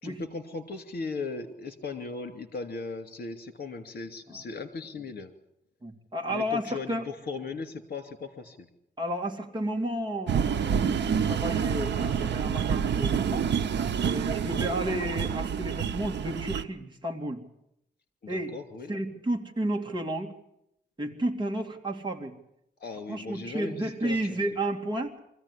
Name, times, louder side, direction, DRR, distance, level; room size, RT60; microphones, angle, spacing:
voice 1, 0.0-5.3 6.3-8.7 14.5-14.7 18.2-18.9 22.8-24.3, left 4 dB, 55° left, 9 dB, 2.8 m, -38 dB
voice 2, 5.8-7.1 9.0-13.5 14.0-17.4 18.3-18.5 18.9-20.3 21.0-22.3 23.1-25.2, right 1 dB, 25° right, 2 dB, 2.6 m, -32 dB
sound 1, 10.3-16.6, right 7 dB, 80° right, 0.9 m, -28 dB
24.0 x 15.0 x 10.0 m, 0.79 s
wide cardioid pair, 145°, 18 cm